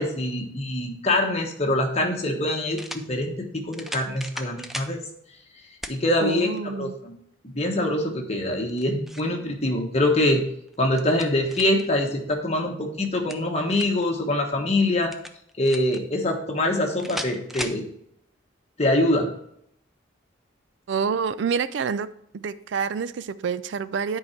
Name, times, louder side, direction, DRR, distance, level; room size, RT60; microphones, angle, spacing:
voice 1, 0.0-5.0 5.9-7.1 7.5-10.4 10.8-15.1 15.6-17.9 18.8-19.3, left 1 dB, 35° left, 1 dB, 1.3 m, -24 dB
Pump Action Shotgun Reload, 1.5-1.6 2.7-3.1 3.7-4.9 5.8-6.0 6.6-6.7 8.5-9.3 10.7-11.9 13.0-14.0 15.1-16.0 17.0-17.8, equal, ahead, 0.4 m, -37 dB
voice 2, 6.2-6.9 20.9-22.1 22.3-24.2, right 6 dB, 70° right, 15 dB, 0.4 m, -27 dB
9.8 x 4.8 x 4.4 m, 0.72 s
head